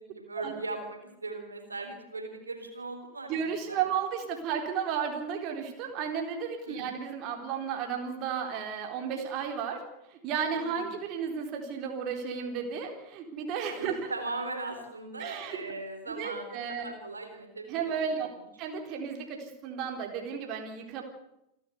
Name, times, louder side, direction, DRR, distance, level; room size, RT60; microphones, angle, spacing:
voice 1, 0.0-3.8 6.7-6.8 10.5-10.8 13.7-18.3, right 3 dB, 80° right, 5 dB, 3.9 m, -39 dB
voice 2, 3.3-9.8 10.1-14.1 15.2-15.6 16.1-16.9 17.7-18.3 18.6-21.0, right 7 dB, 40° right, 3 dB, 4.1 m, -33 dB
28.0 x 12.5 x 8.2 m, 0.83 s
figure-of-eight pair, 90°, 0 cm